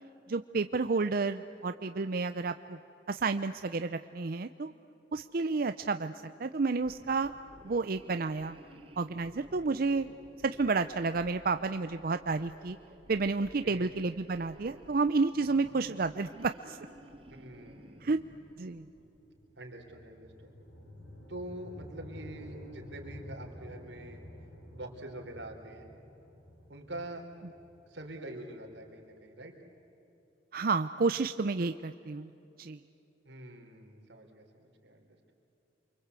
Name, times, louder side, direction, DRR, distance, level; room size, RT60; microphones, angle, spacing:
voice 1, 0.3-2.8 3.1-4.7 5.1-6.1 6.4-7.4 7.6-8.6 9.0-10.1 10.4-12.8 13.1-16.8 18.0-18.2 18.6-18.8 30.5-32.3 32.6-32.8, right 4 dB, 55° right, 10 dB, 0.6 m, -30 dB
sound 1, 6.7-19.2, right 1 dB, 35° right, 2.2 m, -55 dB
voice 2, 13.6-14.0 17.3-18.1 19.6-20.5 21.3-24.2 24.7-25.9 26.7-27.3 27.8-29.5 33.2-35.3, right 1 dB, 90° right, 2 dB, 4.4 m, -45 dB
sound 2, 18.9-29.0, left 1 dB, 85° left, 6.2 m, -51 dB
29.0 x 24.5 x 8.3 m, 3.0 s
head